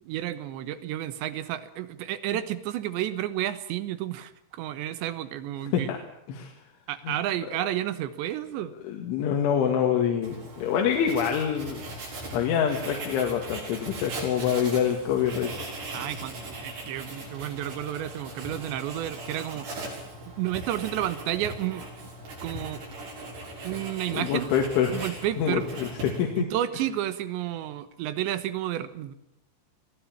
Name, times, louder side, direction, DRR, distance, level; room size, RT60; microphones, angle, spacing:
voice 1, 0.0-5.9 6.9-8.7 15.9-19.7 20.4-22.1 22.4-22.9 23.6-24.5 24.9-25.7 26.4-29.1, right 12 dB, 75° right, 13 dB, 3.4 m, -31 dB
voice 2, 8.9-11.8 12.3-15.5 24.1-25.0 25.4-26.4, left 8 dB, 85° left, 3 dB, 4.4 m, -26 dB
Writing, 10.2-26.4, right 1 dB, 60° right, 8.5 m, -39 dB
23.0 x 16.0 x 8.8 m, 0.82 s
omnidirectional pair, 5.4 m